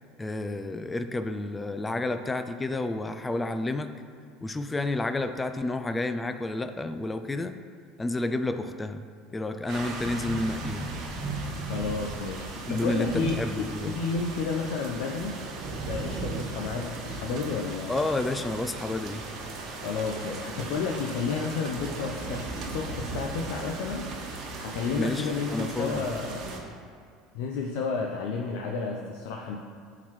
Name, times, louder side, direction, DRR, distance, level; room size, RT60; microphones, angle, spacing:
voice 1, 0.2-3.9 4.4-7.6 8.0-9.0 9.3-10.9 12.7-14.0 17.9-19.3 25.0-26.0, left 2 dB, 15° left, 9 dB, 0.3 m, -30 dB
sound 1, 9.7-26.6, right 3 dB, 55° right, 1.2 m, -37 dB
voice 2, 11.7-15.4 15.9-18.0 19.8-24.1 24.6-26.5 27.3-29.6, left 4 dB, 75° left, 0 dB, 0.6 m, -31 dB
12.0 x 4.0 x 3.1 m, 2.2 s
supercardioid pair, 120°, 0 cm